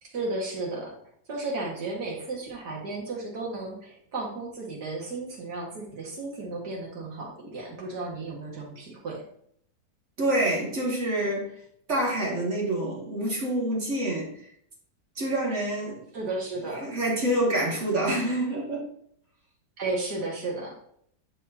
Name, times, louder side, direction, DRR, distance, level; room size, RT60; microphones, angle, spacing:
voice 1, 0.0-1.0 1.3-9.2 16.1-16.9 19.8-20.8, right 3 dB, 85° right, -2 dB, 2.5 m, -34 dB
voice 2, 10.2-11.5 11.9-14.3 15.2-16.0 16.8-18.8, right 1 dB, 45° right, -3 dB, 2.3 m, -27 dB
10.5 x 4.3 x 2.8 m, 0.67 s
omnidirectional pair, 1.7 m